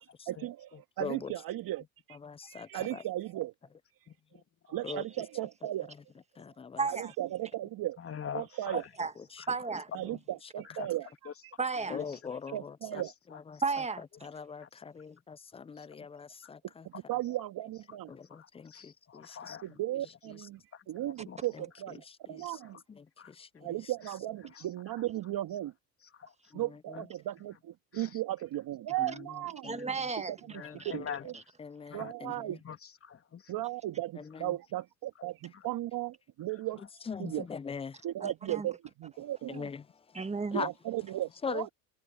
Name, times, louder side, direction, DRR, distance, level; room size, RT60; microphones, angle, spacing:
voice 1, 0.3-3.5 4.0-4.1 4.7-5.9 6.9-8.0 8.3-8.8 9.9-11.1 11.4-11.5 12.5-13.1 16.8-18.2 19.6-20.6 20.9-22.8 23.6-25.7 26.5-29.7 30.3-30.4 30.9-31.3 31.9-32.6 33.5-37.5 38.0-39.7 40.5-41.7, right 14 dB, 50° right, 2.0 m, -36 dB
voice 2, 1.0-1.3 2.2-3.0 4.8-5.0 6.4-6.8 9.3-9.4 10.0-10.2 11.9-13.0 13.3-13.6 14.2-16.8 18.1-19.6 21.5-21.6 22.1-22.4 22.9-23.7 26.5-26.6 29.0-29.1 29.6-29.9 30.6-30.8 31.6-32.6 34.2-34.5 37.1-38.0 39.5-39.8 40.5-40.7 41.4-41.7, left 6 dB, 15° left, 0.5 m, -41 dB
voice 3, 4.1-4.4 4.7-4.8 8.0-8.8 9.4-9.5 10.1-10.2 10.7-10.9 11.2-11.3 11.9-12.0 12.9-13.0 14.6-14.7 15.8-16.1 18.3-19.6 20.7-21.4 22.4-22.5 23.2-23.8 24.6-24.7 26.1-26.3 26.9-27.0 27.9-28.1 30.5-31.2 31.9-32.1 32.6-32.8 33.0-33.5 35.5-35.7, left 7 dB, 30° left, 2.7 m, -44 dB
voice 4, 6.8-7.1 8.7-9.1 9.5-9.9 11.6-12.0 13.6-14.0 29.6-30.3 30.8-30.9 38.2-38.7 40.1-40.6, right 4 dB, 15° right, 1.7 m, -33 dB
hypercardioid pair, 85°, 46 cm